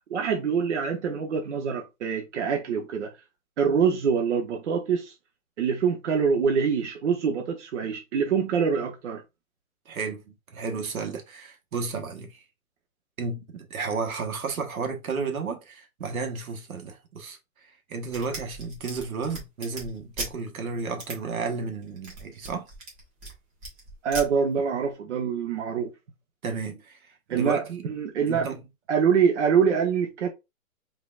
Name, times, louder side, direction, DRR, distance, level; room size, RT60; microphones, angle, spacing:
voice 1, 0.1-3.1 3.6-5.1 5.6-9.2 24.0-25.9 27.3-28.5 28.9-30.3, right 6 dB, 55° right, 0.9 m, -25 dB
voice 2, 9.9-12.4 13.2-17.4 17.9-22.7 26.4-27.0 27.3-27.8 28.3-28.6, right 4 dB, 75° right, 1.3 m, -32 dB
sound 1, 18.1-20.3 21.0-21.2 21.8-23.4 23.6-24.3, right 2 dB, 25° right, 1.4 m, -38 dB
3.9 x 3.3 x 2.4 m
hypercardioid pair, 150°, 43 cm